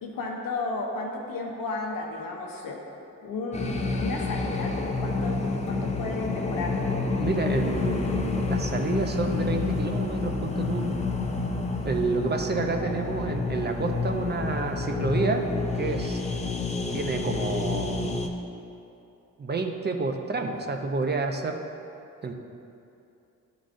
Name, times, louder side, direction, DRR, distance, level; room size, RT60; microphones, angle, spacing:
voice 1, 0.0-2.8 3.2-6.8 12.0-12.2 12.6-12.9, left 3 dB, 85° left, 0 dB, 0.9 m, -33 dB
sound 1, 3.5-18.3, left 3 dB, 20° left, 0.5 m, -29 dB
voice 2, 7.2-11.0 11.8-16.2 16.9-18.0 19.4-21.6 22.2-22.3, right 3 dB, 30° right, 4 dB, 0.5 m, -29 dB
10.0 x 3.9 x 2.5 m, 2.7 s
cardioid pair, 70°, 33 cm